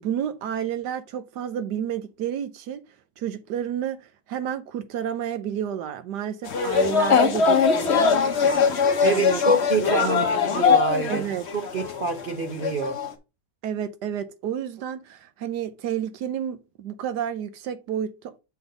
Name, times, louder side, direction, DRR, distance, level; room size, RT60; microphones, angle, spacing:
voice 1, 0.0-2.8 3.2-9.4 10.1-10.4 11.1-11.4 13.6-18.4, right 9 dB, 70° right, 1.3 m, -31 dB
sound 1, 6.4-11.2 11.5-12.2 12.6-13.1, left 6 dB, 45° left, 1.0 m, -21 dB
voice 2, 9.0-11.2 11.7-13.0, right 2 dB, 85° right, 0.4 m, -26 dB
7.0 x 4.0 x 4.9 m
omnidirectional pair, 2.0 m